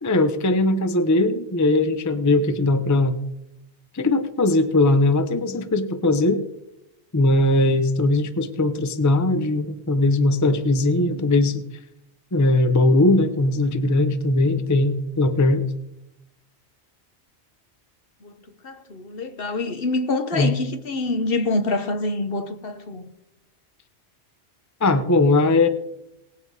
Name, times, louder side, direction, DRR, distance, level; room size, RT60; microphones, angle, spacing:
voice 1, 0.0-3.2 3.9-6.4 7.1-11.6 12.3-15.6 20.3-20.5 24.8-25.7, left 2 dB, 20° left, 0.6 m, -19 dB
voice 2, 18.6-23.1, left 2 dB, 55° left, 1.1 m, -26 dB
19.0 x 7.7 x 4.7 m
omnidirectional pair, 1.2 m